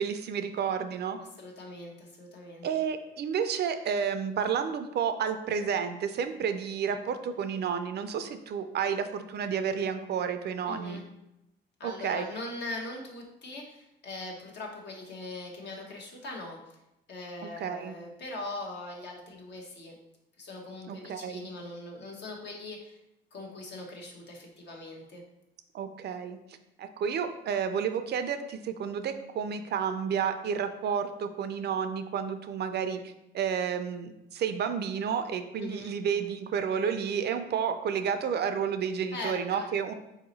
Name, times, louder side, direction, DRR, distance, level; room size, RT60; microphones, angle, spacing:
voice 1, 0.0-1.2 2.6-11.0 11.8-12.3 17.4-17.9 20.9-21.5 25.7-26.4 26.8-39.9, right 7 dB, 55° right, 8 dB, 0.4 m, -31 dB
voice 2, 1.4-2.7 10.7-11.0 11.8-16.6 17.1-19.9 20.4-23.0 23.3-25.2 35.6-35.9 39.1-39.7, left 2 dB, 60° left, 0 dB, 1.1 m, -41 dB
4.0 x 2.8 x 3.9 m, 0.87 s
cardioid pair, 90°, 20 cm